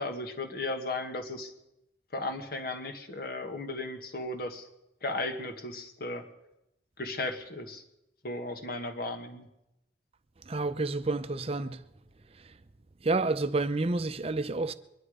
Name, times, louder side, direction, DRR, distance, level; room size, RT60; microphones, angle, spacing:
voice 1, 0.0-1.5 2.1-4.7 5.0-6.2 7.0-7.8 8.2-9.5, left 2 dB, 55° left, 1.6 m, -35 dB
voice 2, 10.5-11.8 13.0-14.7, right 3 dB, 35° right, 0.6 m, -29 dB
22.5 x 11.0 x 5.0 m
head